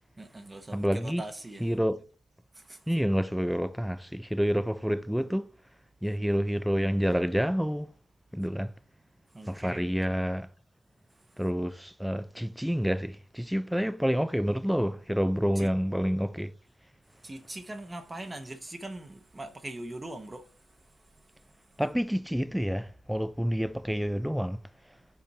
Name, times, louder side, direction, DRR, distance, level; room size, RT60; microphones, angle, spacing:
voice 1, 0.2-1.6 2.7-2.8 9.3-9.9 15.6-15.7 17.2-20.4, right 1 dB, 20° right, 0.9 m, -41 dB
voice 2, 0.7-1.3 1.6-2.0 2.9-5.5 6.0-7.9 8.3-8.7 9.5-10.5 11.4-16.5 21.8-24.6, equal, ahead, 0.5 m, -28 dB
5.5 x 4.4 x 5.3 m
cardioid pair, 90°, 0 cm